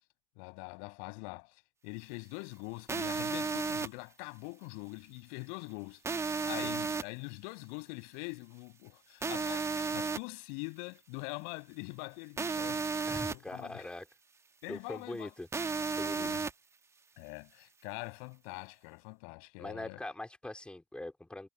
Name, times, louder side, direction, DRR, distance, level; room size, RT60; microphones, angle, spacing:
voice 1, 0.4-12.8 13.1-13.9 14.6-15.3 16.2-16.4 17.2-20.0, left 39 dB, 60° left, 6.2 m, -44 dB
sound 1, 2.9-3.9 6.0-7.0 9.2-10.2 12.4-13.3 15.5-16.5, right 4 dB, 15° right, 1.9 m, -33 dB
voice 2, 13.1-14.1 14.7-15.5 16.0-16.3 19.6-21.5, left 1 dB, 5° left, 4.1 m, -42 dB
hypercardioid pair, 85°, 16 cm